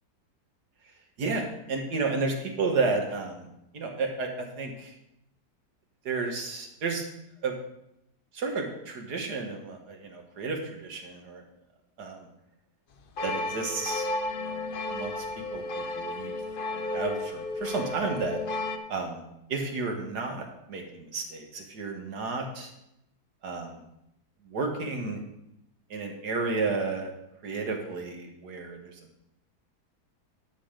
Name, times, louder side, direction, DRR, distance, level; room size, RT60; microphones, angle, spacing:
voice 1, 1.2-3.5 3.7-4.9 6.1-7.1 7.4-7.5 8.3-11.4 12.0-12.3 13.2-14.1 14.4-15.2 15.5-16.4 16.7-18.4 18.9-19.2 19.5-22.7 23.4-23.8 24.5-25.2 25.9-27.1 27.4-28.8, right 4 dB, 80° right, 2 dB, 2.0 m, -32 dB
sound 1, 13.2-18.8, left 2 dB, 50° left, 0.6 m, -33 dB
11.5 x 5.7 x 5.0 m, 0.83 s
omnidirectional pair, 1.7 m